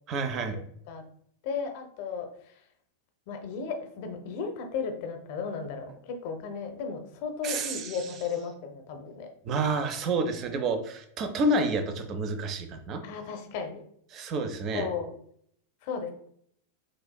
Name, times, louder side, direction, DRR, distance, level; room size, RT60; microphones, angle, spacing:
voice 1, 0.1-0.6 7.4-8.1 9.4-13.0 14.1-14.9, right 2 dB, 35° right, 7 dB, 0.5 m, -29 dB
voice 2, 1.4-2.3 3.3-9.3 13.0-13.8 14.7-15.1 15.8-16.1, left 5 dB, 50° left, 5 dB, 0.7 m, -35 dB
6.1 x 2.5 x 2.2 m, 0.66 s
figure-of-eight pair, 90°, 0 cm